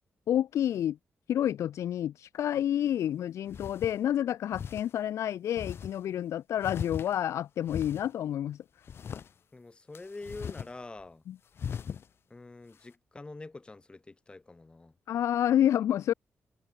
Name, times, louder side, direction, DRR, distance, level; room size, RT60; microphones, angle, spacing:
voice 1, 0.3-1.0 1.3-8.6 11.3-11.4 15.1-16.1, left 11 dB, 90° left, 0.4 m, -29 dB
sound 1, 2.9-3.0 3.5-4.0 4.5-4.9 5.6-6.0 6.6-7.3 7.7-8.1 8.9-9.3 9.9-10.7 11.0-11.1 11.6-12.0, left 7 dB, 55° left, 0.8 m, -39 dB
voice 2, 9.5-11.2 12.3-14.9, left 3 dB, 20° left, 1.1 m, -45 dB
wide cardioid pair, 125°, 5 cm